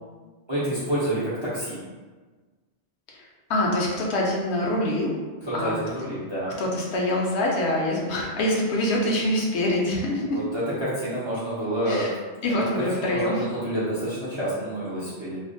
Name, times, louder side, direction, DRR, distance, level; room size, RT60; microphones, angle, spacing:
voice 1, 0.5-1.8 5.4-6.6 10.3-12.1 12.5-15.4, right 1 dB, 40° right, -9 dB, 0.4 m, -28 dB
voice 2, 3.1-5.1 5.5-5.7 6.6-10.4 11.9-12.1 12.4-13.4, left 1 dB, 70° left, -2 dB, 0.8 m, -25 dB
2.5 x 2.1 x 2.5 m, 1.3 s
omnidirectional pair, 1.2 m